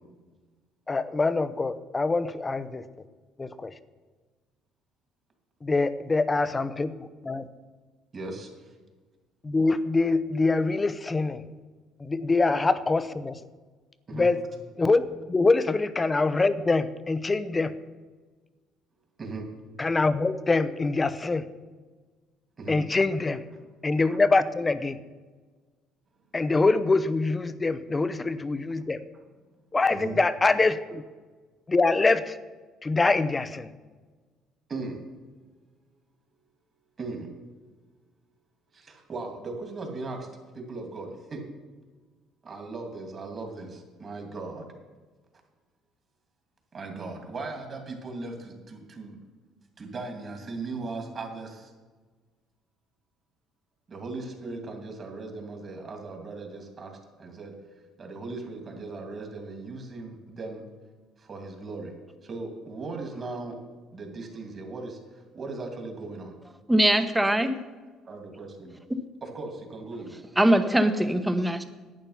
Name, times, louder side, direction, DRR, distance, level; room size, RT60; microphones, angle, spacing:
voice 1, 0.9-2.8 3.4-3.7 5.6-6.9 7.2-7.5 9.4-11.4 12.0-13.4 14.1-14.4 14.8-17.7 19.8-21.5 22.7-23.4 23.8-25.0 26.3-29.0 29.7-31.0 31.7-32.4 32.8-33.7, left 3 dB, 20° left, 14 dB, 0.7 m, -24 dB
voice 2, 8.1-8.7 14.1-14.3 19.2-19.5 22.6-22.8 24.1-24.2 27.9-28.0 29.9-30.2 34.7-35.0 37.0-37.3 38.7-40.3 40.5-41.4 42.4-44.7 46.7-49.2 49.8-51.7 53.9-56.9 57.2-57.5 58.0-60.6 61.2-61.9 62.2-63.6 63.9-66.3 68.1-68.8 69.2-70.1, right 3 dB, 35° right, 3 dB, 2.6 m, -38 dB
voice 3, 66.7-67.6 70.4-71.6, right 1 dB, 10° right, 8 dB, 1.0 m, -22 dB
11.0 x 8.8 x 5.7 m, 1.3 s
cardioid pair, 95°, 0 cm